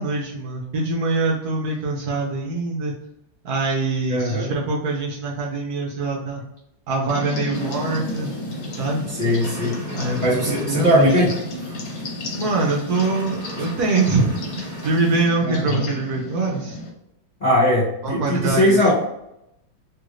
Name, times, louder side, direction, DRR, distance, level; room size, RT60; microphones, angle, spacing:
voice 1, 0.0-2.9 3.4-6.4 6.9-8.3 8.8-9.1 9.9-11.1 12.4-16.8 18.0-18.9, right 3 dB, 65° right, -2 dB, 1.1 m, -24 dB
voice 2, 4.1-4.5 9.2-9.7 10.2-11.3 15.4-15.8 17.4-18.9, equal, 45° left, -9 dB, 0.5 m, -19 dB
sound 1, 7.1-16.9, left 1 dB, 70° left, 1.3 m, -32 dB
sound 2, 7.5-15.3, equal, 40° right, 0.7 m, -39 dB
3.2 x 2.5 x 3.0 m, 0.82 s
omnidirectional pair, 2.1 m